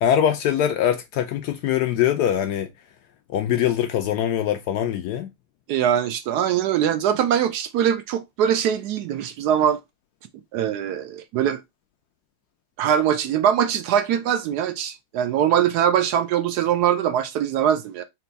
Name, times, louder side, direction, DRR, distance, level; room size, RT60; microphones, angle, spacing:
voice 1, 0.0-2.7 3.3-5.3, left 10 dB, 75° left, 1.0 m, -22 dB
voice 2, 5.7-9.8 10.5-11.6 12.8-18.0, right 9 dB, 70° right, 1.0 m, -22 dB
4.3 x 2.3 x 3.8 m
omnidirectional pair, 2.0 m